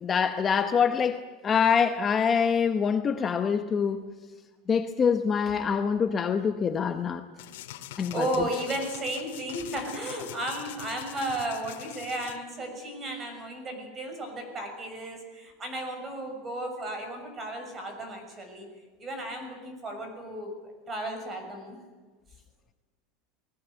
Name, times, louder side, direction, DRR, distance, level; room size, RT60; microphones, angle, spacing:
voice 1, 0.0-4.1 4.7-7.2 8.0-8.3, left 6 dB, 20° left, 0.9 m, -25 dB
sound 1, 7.4-12.4, left 14 dB, 90° left, 2.2 m, -44 dB
voice 2, 8.1-18.7 19.0-21.8, right 1 dB, 20° right, 6.4 m, -34 dB
29.0 x 20.0 x 8.2 m
supercardioid pair, 165°, 0 cm